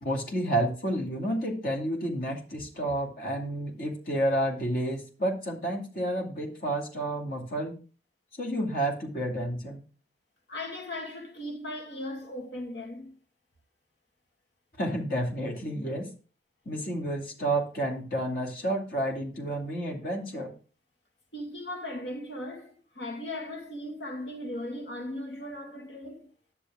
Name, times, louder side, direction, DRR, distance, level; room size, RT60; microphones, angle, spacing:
voice 1, 0.0-7.8 8.4-9.8 14.8-16.1 16.7-20.5, right 1 dB, 55° left, 2.5 m, -30 dB
voice 2, 10.5-13.1 21.3-26.3, left 1 dB, 80° left, 2.0 m, -37 dB
10.0 x 7.1 x 3.7 m
head